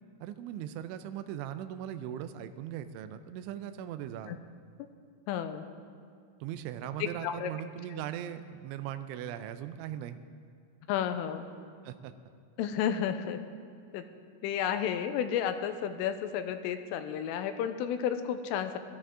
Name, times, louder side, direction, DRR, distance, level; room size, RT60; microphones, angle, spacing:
voice 1, 0.2-4.4 6.4-10.2 11.8-12.1, right 10 dB, 85° right, 9 dB, 2.8 m, -39 dB
voice 2, 5.3-5.6 7.2-7.5 10.9-11.4 12.6-13.4 13.9-14.0 14.4-18.8, left 9 dB, 85° left, 9 dB, 3.2 m, -32 dB
21.0 x 13.0 x 3.7 m, 2.3 s
omnidirectional pair, 5.8 m